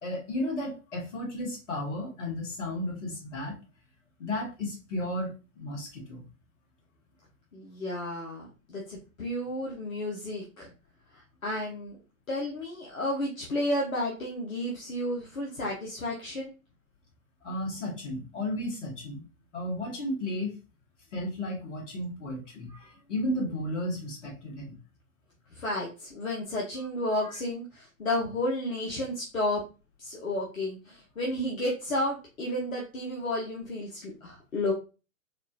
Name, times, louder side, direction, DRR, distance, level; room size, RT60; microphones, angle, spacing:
voice 1, 0.0-3.6 4.2-6.2 17.4-19.3 19.5-20.5 21.1-24.8, left 1 dB, 55° left, -2 dB, 1.7 m, -34 dB
voice 2, 7.5-10.7 11.1-12.0 12.3-16.5 25.5-29.6 30.0-34.7, left 1 dB, 70° left, -3 dB, 1.1 m, -32 dB
4.0 x 2.5 x 2.7 m, 0.31 s
figure-of-eight pair, 115°, 42 cm